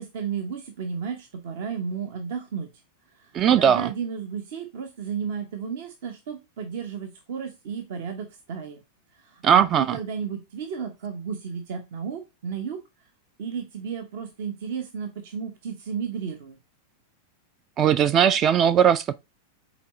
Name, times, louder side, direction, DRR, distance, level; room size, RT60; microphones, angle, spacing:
voice 1, 0.0-2.7 3.1-8.8 9.1-12.8 13.4-16.6, right 6 dB, 55° right, 0.9 m, -33 dB
voice 2, 3.3-3.9 9.4-10.0 17.8-19.1, right 9 dB, 30° right, 0.3 m, -19 dB
7.3 x 4.1 x 3.1 m
figure-of-eight pair, 90°, 0 cm